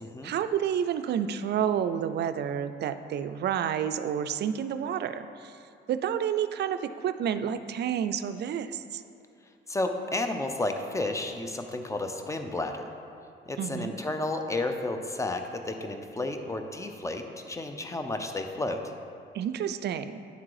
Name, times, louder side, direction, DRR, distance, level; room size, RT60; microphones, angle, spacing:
voice 1, 0.2-5.6 5.9-9.0 13.6-13.9 19.3-20.2, right 9 dB, 55° right, 11 dB, 0.4 m, -30 dB
voice 2, 9.7-12.8 13.5-18.8, left 2 dB, 15° left, 6 dB, 0.6 m, -32 dB
9.3 x 3.7 x 4.8 m, 2.6 s
cardioid pair, 90°, 20 cm